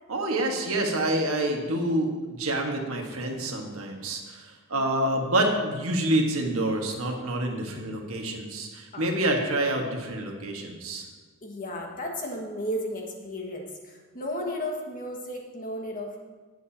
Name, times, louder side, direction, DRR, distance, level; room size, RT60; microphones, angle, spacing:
voice 1, 0.1-11.1, right 1 dB, 70° right, 2 dB, 1.6 m, -27 dB
voice 2, 11.4-16.2, equal, 40° left, 0 dB, 1.7 m, -34 dB
18.5 x 8.0 x 2.9 m, 1.3 s
head